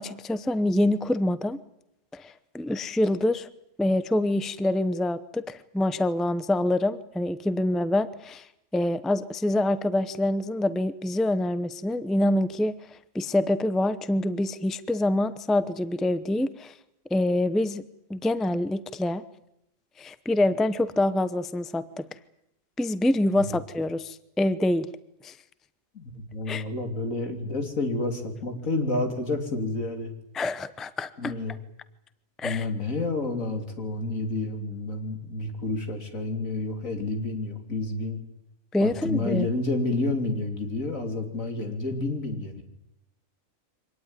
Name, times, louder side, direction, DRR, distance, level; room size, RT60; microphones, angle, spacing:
voice 1, 0.0-1.6 2.1-3.5 3.8-8.4 8.7-12.8 13.1-16.7 17.1-17.8 18.1-19.2 20.0-22.0 22.8-24.9 25.2-25.3 26.5-26.6 30.3-31.3 32.4-32.7 38.7-39.5, left 1 dB, ahead, 14 dB, 0.6 m, -26 dB
voice 2, 25.9-30.1 31.2-31.5 32.4-38.2 38.8-42.6, left 2 dB, 80° left, 5 dB, 3.6 m, -29 dB
24.5 x 18.5 x 9.9 m, 0.83 s
omnidirectional pair, 1.4 m